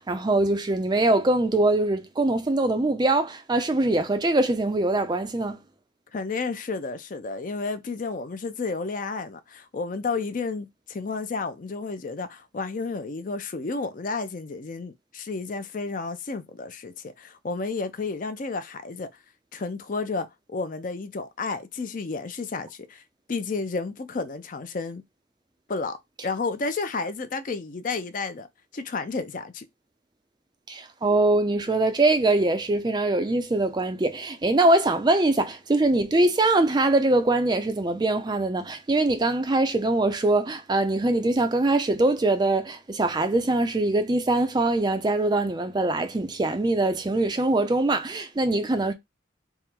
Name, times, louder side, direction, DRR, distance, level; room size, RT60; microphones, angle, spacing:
voice 1, 0.0-5.6 30.7-48.9, right 2 dB, 20° right, 0.4 m, -23 dB
voice 2, 6.1-19.1 19.5-23.0 23.3-25.0 25.7-26.0 26.2-28.5 28.7-29.7, left 4 dB, 45° left, 0.5 m, -31 dB
3.6 x 2.0 x 4.3 m
head